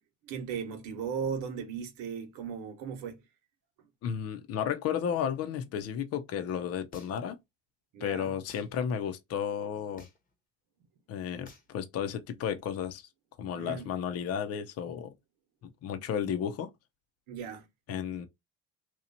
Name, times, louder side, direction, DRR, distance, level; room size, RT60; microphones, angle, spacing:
voice 1, 0.2-3.2 7.9-8.3 13.6-13.9 17.3-17.7, right 7 dB, 75° right, 1.0 m, -37 dB
voice 2, 4.0-7.4 8.0-10.0 11.1-13.0 13.4-15.1 15.8-16.7 17.9-18.3, left 8 dB, 50° left, 0.7 m, -33 dB
sound 1, 6.9-7.4 8.5-8.7 10.0-10.3 11.5-11.7, left 3 dB, 30° left, 1.0 m, -52 dB
2.9 x 2.4 x 4.0 m
supercardioid pair, 90°, 30 cm